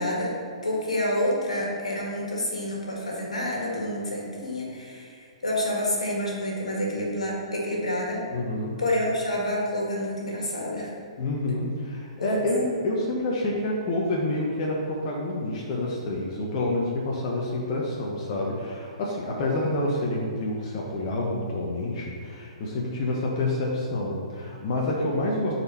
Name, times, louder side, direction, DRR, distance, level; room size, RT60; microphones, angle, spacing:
voice 1, 0.0-8.3 8.8-10.9 12.2-12.3, left 1 dB, 75° left, -2 dB, 2.0 m, -28 dB
voice 2, 8.3-8.8 11.2-25.5, left 2 dB, 40° left, -3 dB, 1.1 m, -28 dB
10.0 x 4.5 x 4.3 m, 2.1 s
figure-of-eight pair, 120°, 3 cm